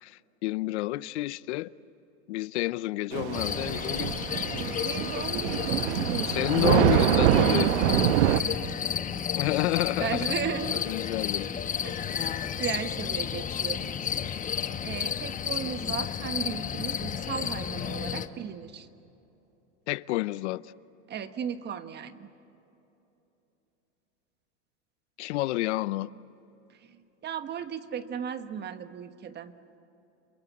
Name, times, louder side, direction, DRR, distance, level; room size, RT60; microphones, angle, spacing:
voice 1, 0.0-1.7 2.3-4.1 6.2-8.2 9.3-10.3 10.9-11.5 19.9-20.6 25.2-26.1, left 17 dB, 75° left, 0.7 m, -29 dB
Thunder / Rain, 3.1-8.4, right 13 dB, 80° right, 0.9 m, -25 dB
sound 1, 3.3-18.3, left 8 dB, 25° left, 1.0 m, -32 dB
voice 2, 4.8-6.4 8.3-9.3 9.6-9.7 10.0-10.9 11.8-12.3 12.6-13.9 14.8-18.9 21.1-22.3 26.7-29.5, right 8 dB, 30° right, 1.4 m, -36 dB
28.0 x 22.5 x 8.4 m
supercardioid pair, 120°, 35 cm